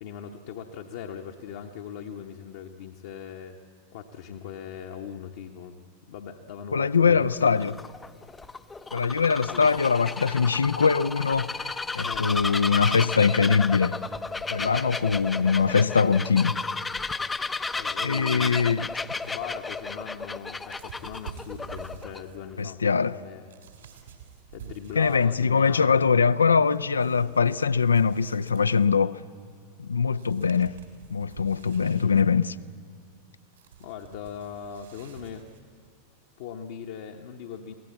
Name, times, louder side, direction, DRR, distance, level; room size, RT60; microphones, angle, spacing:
voice 1, 0.0-3.6 3.9-5.8 6.1-7.5 8.9-9.2 9.4-9.7 12.0-12.4 14.6-14.9 17.8-18.7 19.3-22.8 23.1-23.5 24.5-26.0 33.8-35.5 36.4-37.7, left 8 dB, 55° left, 1.0 m, -40 dB
voice 2, 6.7-7.8 8.9-14.0 14.5-16.7 18.0-18.9 22.6-23.2 25.0-29.2 29.8-30.8 31.1-32.6, left 5 dB, 75° left, 0.5 m, -22 dB
Bird vocalization bird call bird song, 7.2-22.2, left 4 dB, 10° left, 0.6 m, -33 dB
sound 1, 19.1-25.5 25.8-29.1 29.8-29.9 30.1-35.9, right 7 dB, 65° right, 3.3 m, -48 dB
23.0 x 17.0 x 8.4 m
figure-of-eight pair, 90°, 0 cm